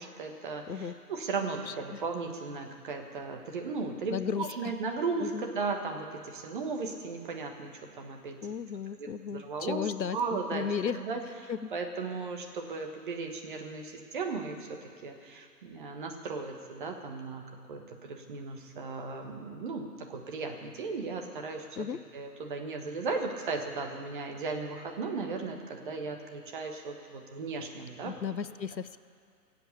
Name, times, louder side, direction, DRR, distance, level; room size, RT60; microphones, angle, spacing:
voice 1, 0.0-8.4 9.0-14.7 15.0-21.6 22.1-28.1, right 4 dB, 30° right, 4 dB, 1.4 m, -36 dB
voice 2, 1.7-2.0 4.1-4.7 5.2-5.4 8.4-10.2 10.5-11.0 11.5-11.7 21.8-22.0 28.0-29.0, left 7 dB, 80° left, 15 dB, 0.7 m, -35 dB
19.5 x 8.0 x 8.3 m, 2.2 s
figure-of-eight pair, 135°, 50 cm